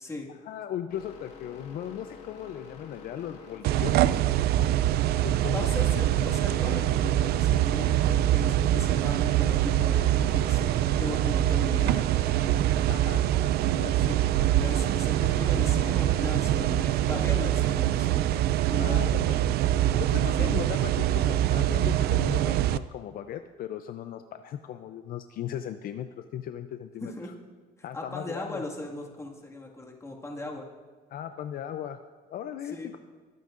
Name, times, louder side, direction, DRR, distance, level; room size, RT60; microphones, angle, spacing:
voice 1, 0.3-4.0 5.2-6.0 12.9-13.2 13.6-14.0 18.8-19.5 20.0-27.1 27.8-28.6 31.1-32.0 32.3-33.0, left 10 dB, 60° left, 9 dB, 0.5 m, -37 dB
sound 1, 0.9-16.3, left 5 dB, 80° left, 2.1 m, -48 dB
sound 2, 3.6-22.8, right 12 dB, 70° right, 0.4 m, -24 dB
voice 2, 5.3-10.7 11.0-12.1 14.1-14.3 14.6-18.3 18.7-19.0 20.4-20.6 27.0-27.3 27.8-30.7 32.7-32.9, left 2 dB, 15° left, -1 dB, 1.9 m, -38 dB
sound 3, 15.4-20.8, right 1 dB, 40° right, 3.8 m, -50 dB
19.5 x 9.2 x 2.5 m, 1.5 s
cardioid pair, 110°, 17 cm